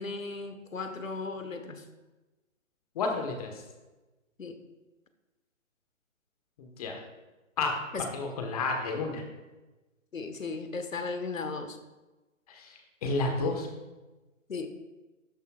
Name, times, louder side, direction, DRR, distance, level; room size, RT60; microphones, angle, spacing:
voice 1, 0.0-1.8 4.4-4.6 7.9-8.1 10.1-11.8 14.5-14.8, left 4 dB, 80° left, 8 dB, 1.4 m, -36 dB
voice 2, 2.9-3.5 6.6-7.0 7.6-7.8 8.1-9.2 12.5-12.7 13.0-13.7, left 3 dB, 30° left, 3 dB, 1.4 m, -30 dB
13.0 x 10.5 x 2.5 m, 1.1 s
figure-of-eight pair, 145°, 40 cm